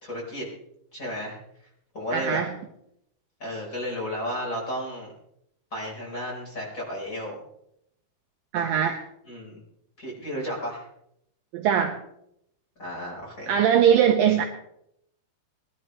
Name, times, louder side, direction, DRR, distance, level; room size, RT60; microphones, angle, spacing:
voice 1, 0.0-0.5 0.9-1.4 1.9-2.4 3.4-5.1 5.7-7.4 9.3-9.6 10.0-10.9 12.8-13.6 14.2-14.4, equal, 20° left, -4 dB, 4.5 m, -33 dB
voice 2, 2.1-2.5 8.5-9.0 11.5-11.9 13.5-14.4, right 8 dB, 75° right, 3 dB, 2.2 m, -21 dB
21.5 x 12.0 x 3.2 m, 0.76 s
omnidirectional pair, 4.7 m